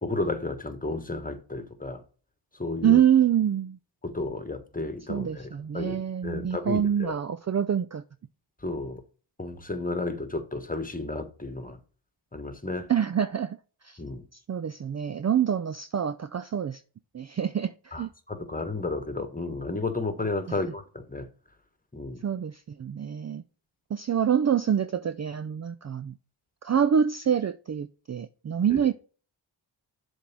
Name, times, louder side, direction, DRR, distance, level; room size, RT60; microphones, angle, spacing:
voice 1, 0.0-2.0 2.6-3.0 4.0-7.1 8.6-9.0 9.4-11.8 12.3-12.9 14.0-14.2 17.9-21.3 21.9-22.2 28.7-28.8, left 2 dB, 15° left, 1.5 m, -32 dB
voice 2, 2.8-3.8 5.1-8.0 12.9-13.6 13.8-14.0 14.3-16.8 17.1-18.1 20.5-20.6 22.2-23.4 23.9-26.2 26.6-28.9, right 9 dB, 35° right, 0.4 m, -26 dB
7.4 x 3.6 x 6.0 m
cardioid pair, 50°, 48 cm